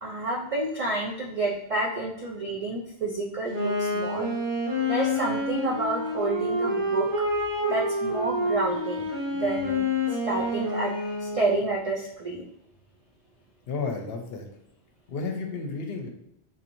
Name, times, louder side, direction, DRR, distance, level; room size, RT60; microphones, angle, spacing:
voice 1, 0.0-4.3 4.9-7.1 7.7-9.1 9.3-12.5, right 2 dB, 60° right, -2 dB, 0.3 m, -29 dB
Wind instrument woodwind instrument, 3.5-11.8, left 1 dB, 40° right, 1.5 m, -28 dB
voice 2, 13.7-14.5 15.1-16.1, left 4 dB, 70° left, 3 dB, 0.8 m, -32 dB
3.9 x 2.9 x 2.6 m, 0.82 s
omnidirectional pair, 1.1 m